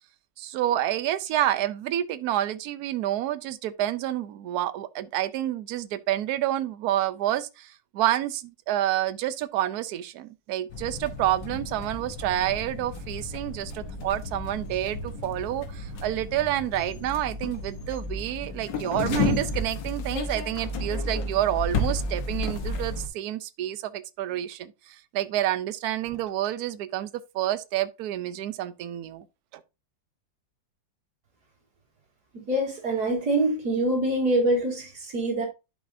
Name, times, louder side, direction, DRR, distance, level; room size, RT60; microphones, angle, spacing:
voice 1, 0.4-27.1 27.3-29.2 29.5-29.6, right 13 dB, 70° right, 1.0 m, -28 dB
sound 1, 10.7-23.1, left 2 dB, 70° left, 1.7 m, -32 dB
voice 2, 32.3-35.5, right 1 dB, 55° right, 2.8 m, -25 dB
10.5 x 5.1 x 2.6 m
omnidirectional pair, 2.1 m